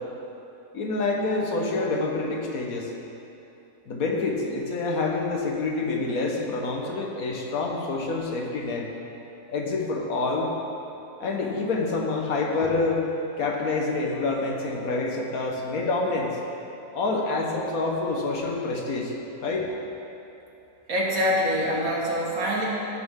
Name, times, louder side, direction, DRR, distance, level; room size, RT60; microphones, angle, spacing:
voice 1, 0.7-2.9 3.9-8.9 9.5-10.5 11.2-13.1 13.4-16.3 16.9-19.1 19.4-19.7, left 3 dB, 65° left, 0 dB, 1.5 m, -27 dB
voice 2, 20.9-22.7, equal, 65° right, -4 dB, 2.0 m, -25 dB
16.5 x 6.3 x 3.7 m, 2.9 s
omnidirectional pair, 1.6 m